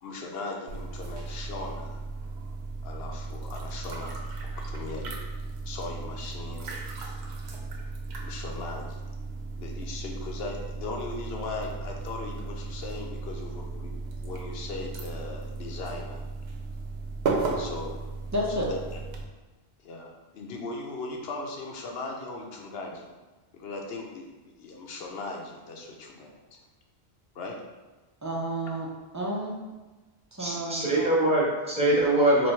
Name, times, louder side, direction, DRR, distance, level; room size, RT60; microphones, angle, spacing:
voice 1, 0.0-2.0 2.8-5.2 5.7-6.7 8.2-9.0 9.6-13.9 14.2-16.2 17.6-18.0 18.5-19.0 19.8-23.1 23.5-26.4 27.3-27.6, left 3 dB, 70° left, 1 dB, 0.9 m, -38 dB
sound 1, 0.7-19.2, right 3 dB, 80° right, 0.9 m, -35 dB
voice 2, 18.3-18.7 28.2-28.9 29.1-29.7 30.3-31.1, equal, 25° right, -3 dB, 0.4 m, -31 dB
voice 3, 30.4-32.5, right 1 dB, 5° right, -6 dB, 0.8 m, -23 dB
3.1 x 2.6 x 4.3 m, 1.2 s
omnidirectional pair, 1.1 m